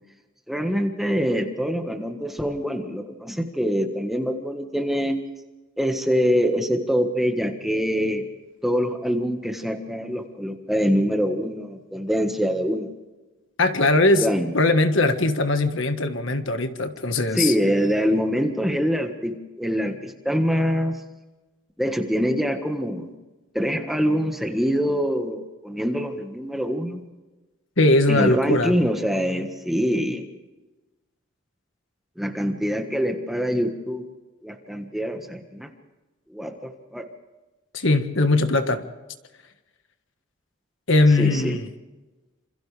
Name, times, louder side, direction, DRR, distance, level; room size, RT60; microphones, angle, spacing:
voice 1, 0.5-5.2 5.8-8.2 8.6-12.9 14.2-14.5 17.3-21.0 21.8-23.1 23.5-27.0 28.1-30.2 32.2-34.1 34.4-35.7 36.3-37.0 41.2-41.6, equal, ahead, 4 dB, 1.5 m, -24 dB
voice 2, 13.6-14.3 14.5-17.5 27.8-28.7 37.7-38.8 40.9-41.7, left 2 dB, 65° left, 8 dB, 1.6 m, -20 dB
27.5 x 27.0 x 3.4 m, 1.2 s
head